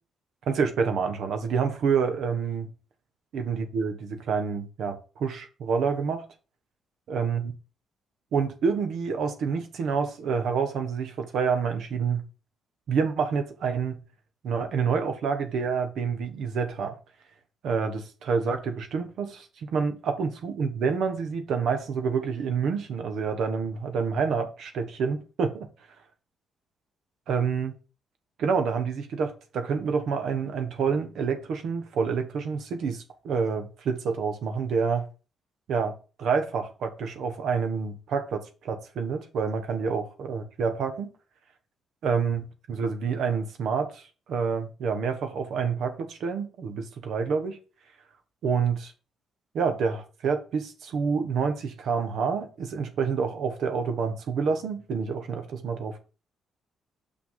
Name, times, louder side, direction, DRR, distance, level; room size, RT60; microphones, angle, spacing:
voice 1, 0.5-2.7 3.3-6.2 7.1-7.5 8.3-12.2 12.9-14.0 14.4-17.0 17.6-25.7 27.3-27.8 28.4-35.0 35.7-41.1 42.0-47.6 48.4-48.9 49.5-56.0, right 5 dB, 70° right, 1.2 m, -28 dB
6.1 x 6.0 x 3.8 m
cardioid pair, 90°, 0 cm